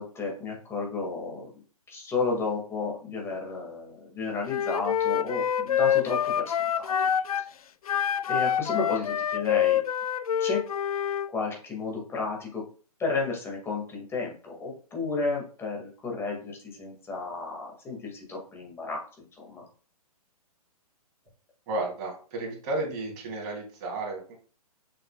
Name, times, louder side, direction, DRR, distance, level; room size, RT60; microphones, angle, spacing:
voice 1, 0.0-1.5 1.9-6.9 8.3-9.8 10.4-10.6 11.3-12.6 13.0-19.6, left 3 dB, 15° left, -1 dB, 2.1 m, -32 dB
Wind instrument woodwind instrument, 4.5-7.5 7.9-11.3, left 9 dB, 70° left, 0.4 m, -26 dB
voice 2, 21.7-24.3, right 2 dB, 35° right, -1 dB, 3.0 m, -33 dB
6.6 x 6.1 x 2.4 m, 0.39 s
figure-of-eight pair, 125°, 20 cm